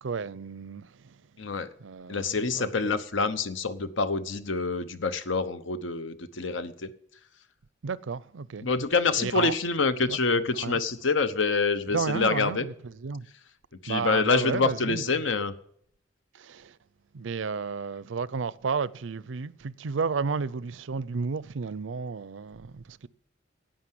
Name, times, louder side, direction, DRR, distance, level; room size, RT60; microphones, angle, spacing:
voice 1, 0.0-1.4 1.8-2.7 7.8-8.7 9.2-9.5 10.1-10.2 10.6-10.8 11.9-13.3 13.9-15.2 16.3-16.8 17.1-23.1, right 5 dB, 80° right, 0.5 m, -32 dB
voice 2, 1.4-1.7 2.1-6.9 8.6-12.7 13.8-15.5, left 4 dB, 80° left, 0.9 m, -26 dB
11.5 x 8.9 x 7.5 m
head